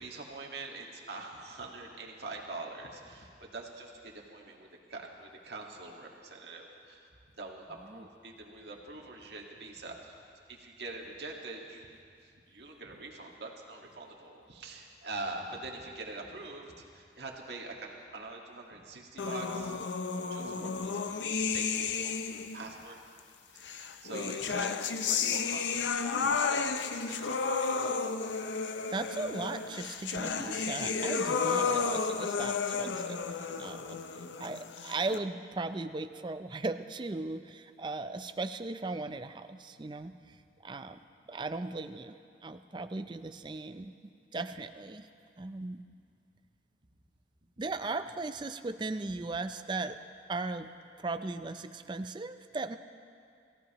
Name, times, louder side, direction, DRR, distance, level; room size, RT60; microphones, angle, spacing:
voice 1, 0.0-7.1 7.4-10.2 10.5-11.9 12.5-19.9 20.3-23.0 23.5-28.2, right 2 dB, 70° right, -1 dB, 1.7 m, -44 dB
sound 1, 19.2-22.6 23.6-35.2, left 5 dB, 90° left, 0.6 m, -32 dB
voice 2, 20.4-20.7 28.9-33.2 33.6-34.0 34.4-40.4 40.6-41.0 41.3-42.2 42.4-43.9 44.3-45.1 45.4-45.8 47.6-50.0 50.3-50.7 51.0-52.8, right 3 dB, 25° right, 9 dB, 0.4 m, -37 dB
23.5 x 15.0 x 3.0 m, 2.4 s
head